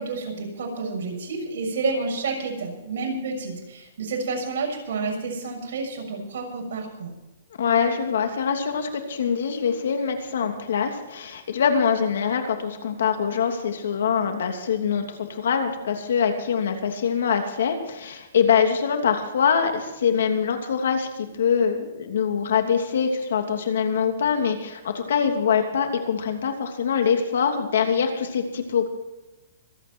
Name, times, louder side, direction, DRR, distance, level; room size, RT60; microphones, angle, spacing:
voice 1, 0.0-7.1, right 3 dB, 60° right, 0 dB, 6.6 m, -30 dB
voice 2, 7.6-28.9, left 7 dB, 70° left, 5 dB, 2.9 m, -24 dB
25.0 x 9.2 x 4.6 m, 1.0 s
hypercardioid pair, 165°, 0 cm